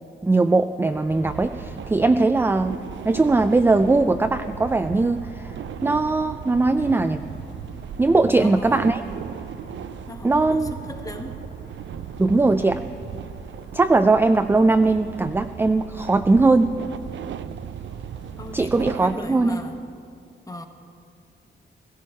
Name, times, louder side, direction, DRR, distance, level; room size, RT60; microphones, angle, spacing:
voice 1, 0.2-2.8 3.0-5.6 5.8-7.3 8.0-9.0 10.2-10.7 12.2-12.8 13.7-16.7 18.5-19.6, right 3 dB, 10° right, 8 dB, 0.3 m, -20 dB
sound 1, 0.8-19.8, left 2 dB, 75° left, 1.2 m, -45 dB
sound 2, 1.3-19.2, right 9 dB, 80° right, 0.4 m, -37 dB
voice 2, 8.2-8.8 10.1-11.5 18.4-19.8 20.5-20.7, left 1 dB, 20° left, 6 dB, 1.1 m, -38 dB
16.5 x 15.0 x 4.5 m, 2.5 s
cardioid pair, 105°, 19 cm